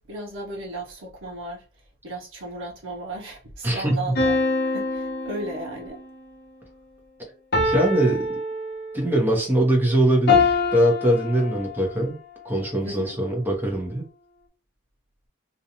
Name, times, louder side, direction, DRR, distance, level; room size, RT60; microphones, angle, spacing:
voice 1, 0.1-1.6 2.0-6.0 12.8-13.2, right 2 dB, 85° right, 0.7 m, -35 dB
voice 2, 3.6-4.1 7.6-8.3 8.9-12.2 12.4-14.0, right 1 dB, 10° right, 0.7 m, -22 dB
sound 1, 4.2-6.0 7.5-9.2 10.3-12.0, left 3 dB, 55° left, 0.6 m, -24 dB
2.5 x 2.2 x 2.9 m
head